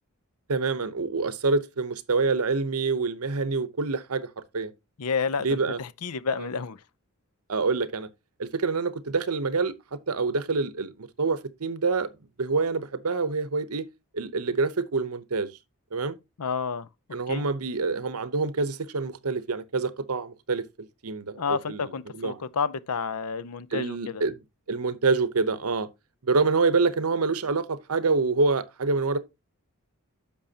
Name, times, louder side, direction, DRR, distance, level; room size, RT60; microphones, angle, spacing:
voice 1, 0.5-4.3 4.5-4.7 5.4-5.8 6.4-6.5 7.5-8.1 8.4-9.7 10.1-12.1 12.4-13.8 14.1-15.5 15.9-16.2 17.1-20.6 21.0-22.4 23.7-24.4 24.7-25.9 26.2-29.2, right 4 dB, 80° right, 0.9 m, -26 dB
voice 2, 5.0-6.8 16.4-16.9 17.3-17.5 21.4-24.2, left 5 dB, 90° left, 0.6 m, -30 dB
10.5 x 6.9 x 2.8 m
head